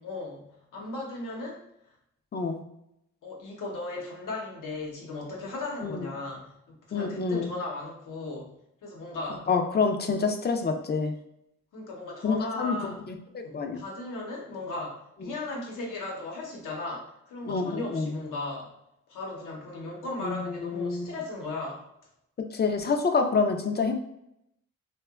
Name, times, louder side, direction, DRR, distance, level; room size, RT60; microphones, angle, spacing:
voice 1, 0.0-0.5 0.7-1.6 3.2-8.5 8.8-9.5 11.7-13.0 13.4-18.7 19.1-21.8, left 2 dB, 90° left, -2 dB, 0.8 m, -36 dB
voice 2, 2.3-2.6 5.8-6.1 6.9-7.5 9.5-11.1 12.2-12.8 13.3-13.8 17.4-18.1 20.2-21.2 22.5-23.9, left 4 dB, 35° left, 5 dB, 0.4 m, -27 dB
2.8 x 2.2 x 2.2 m, 0.82 s
cardioid pair, 60°, 31 cm